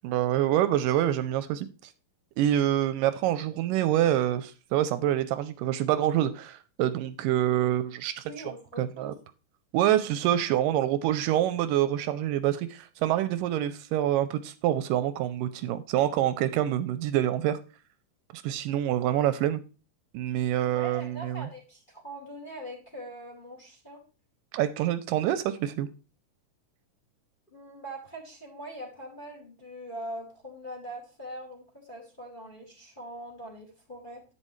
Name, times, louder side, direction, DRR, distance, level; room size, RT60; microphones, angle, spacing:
voice 1, 0.0-1.7 2.4-8.2 8.8-9.1 9.7-17.6 18.3-19.6 20.1-21.5 24.5-25.9, right 12 dB, 80° right, 2.1 m, -26 dB
voice 2, 8.3-9.1 20.7-24.0 27.5-34.2, right 1 dB, 20° left, 1.7 m, -42 dB
9.9 x 9.6 x 3.1 m
omnidirectional pair, 4.0 m